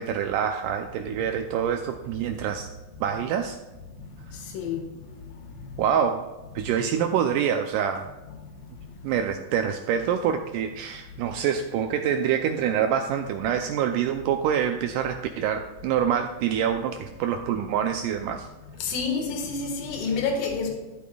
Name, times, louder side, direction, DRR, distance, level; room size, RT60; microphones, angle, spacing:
voice 1, 0.0-2.7 3.0-3.6 5.8-6.2 6.6-8.1 9.0-18.5, right 8 dB, 85° right, 6 dB, 1.8 m, -26 dB
voice 2, 18.8-20.7, left 4 dB, 70° left, 2 dB, 3.2 m, -28 dB
13.5 x 8.3 x 2.3 m, 1.2 s
omnidirectional pair, 4.2 m